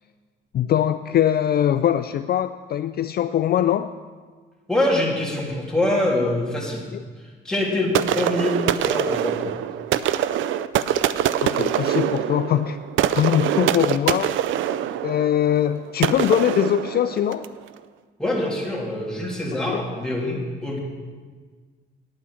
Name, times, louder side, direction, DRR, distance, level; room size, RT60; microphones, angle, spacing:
voice 1, 0.5-3.9 6.9-7.0 11.4-12.8 13.1-14.4 15.0-17.5 19.7-19.8, left 10 dB, 50° left, 10 dB, 0.4 m, -22 dB
voice 2, 4.7-6.9 7.4-9.5 18.2-20.8, left 1 dB, 5° left, -3 dB, 2.8 m, -24 dB
sound 1, 7.9-17.6, right 11 dB, 80° right, 0.5 m, -24 dB
9.5 x 9.0 x 6.2 m, 1.5 s
cardioid pair, 90°, 20 cm